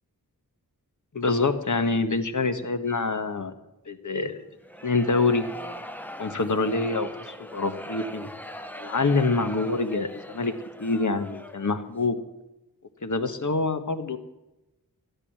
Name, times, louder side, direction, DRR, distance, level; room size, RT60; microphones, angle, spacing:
voice 1, 1.1-3.6 3.9-4.4 4.8-5.4 6.2-8.3 8.8-10.5 10.8-12.2 13.0-14.2, left 3 dB, 55° left, 8 dB, 1.5 m, -26 dB
sound 1, 4.6-11.8, equal, 5° left, 0.8 m, -40 dB
14.0 x 9.7 x 9.5 m, 0.99 s
wide cardioid pair, 70°, 37 cm